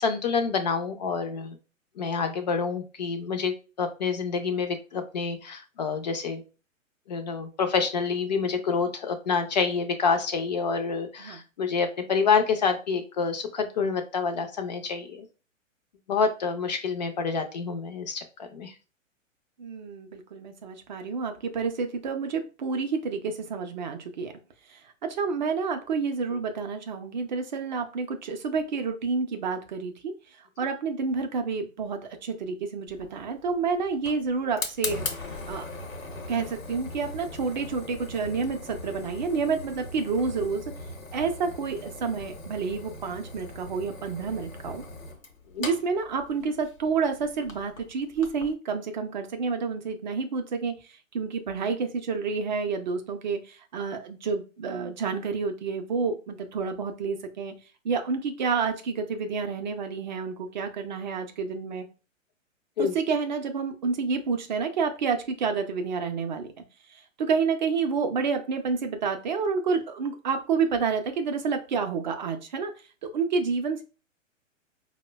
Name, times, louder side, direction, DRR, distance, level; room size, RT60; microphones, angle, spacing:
voice 1, 0.0-1.5 2.0-6.4 7.1-15.3 16.1-18.7 45.5-45.7 62.8-62.9, left 5 dB, 35° left, 7 dB, 0.4 m, -27 dB
voice 2, 19.6-24.3 24.7-30.1 30.6-35.0 35.5-35.7 36.3-40.6 41.1-44.8 45.6-57.5 57.8-61.9 62.8-66.5 66.9-72.7 73.0-73.8, right 5 dB, 35° right, 6 dB, 0.4 m, -29 dB
Fire, 32.9-48.5, left 3 dB, 85° left, 0.9 m, -40 dB
4.7 x 2.1 x 2.2 m, 0.33 s
figure-of-eight pair, 115°, 39 cm